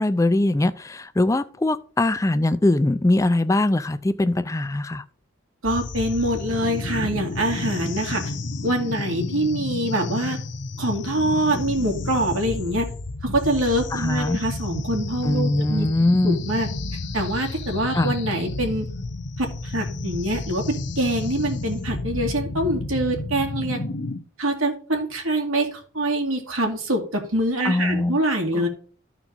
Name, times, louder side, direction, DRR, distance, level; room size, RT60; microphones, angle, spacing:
voice 1, 0.0-5.0 13.9-14.4 15.2-16.4 17.9-18.1 27.6-28.2 28.5-28.6, left 2 dB, 15° left, 0.3 m, -21 dB
sound 1, 5.6-24.2, left 2 dB, 60° left, 0.8 m, -31 dB
voice 2, 5.6-8.3 8.6-10.4 10.8-12.9 13.2-15.9 16.2-16.7 17.1-18.9 19.4-23.8 24.4-28.7, right 1 dB, 90° right, 2.3 m, -24 dB
13.5 x 4.5 x 3.9 m
head